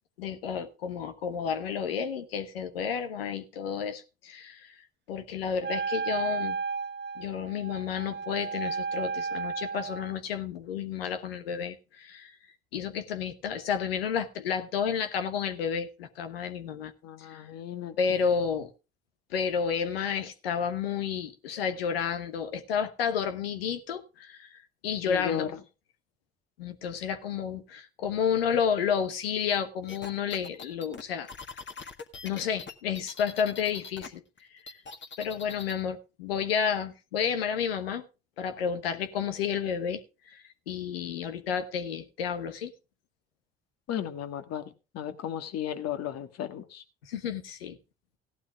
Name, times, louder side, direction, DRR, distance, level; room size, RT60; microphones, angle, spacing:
voice 1, 0.2-4.7 5.1-6.6 7.2-12.3 12.7-16.9 17.3-17.4 18.0-18.7 19.3-25.6 26.6-31.3 32.2-34.2 34.7-34.8 35.2-38.0 38.4-40.0 40.3-42.7 47.0-47.8, left 7 dB, 90° left, 1.2 m, -31 dB
Wind instrument woodwind instrument, 5.6-10.2, right 5 dB, 35° right, 1.0 m, -33 dB
voice 2, 17.0-18.2 25.0-25.6 43.9-44.6 44.9-46.8, left 10 dB, 60° left, 1.6 m, -35 dB
sound 1, 29.9-34.1 34.4-35.8, left 4 dB, 40° left, 1.7 m, -43 dB
17.0 x 11.5 x 2.4 m
hypercardioid pair, 50°, 29 cm